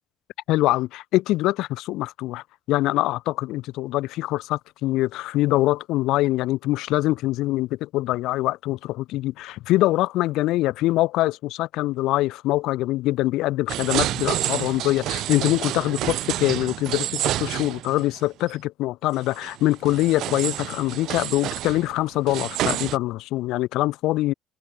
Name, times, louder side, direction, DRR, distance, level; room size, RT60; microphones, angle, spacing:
voice 1, 0.5-24.3, left 17 dB, 90° left, 1.9 m, -24 dB
sound 1, 13.7-18.2 18.5-18.6 19.3-23.0, right 14 dB, 65° right, 3.7 m, -29 dB
cardioid pair, 175°, 0 cm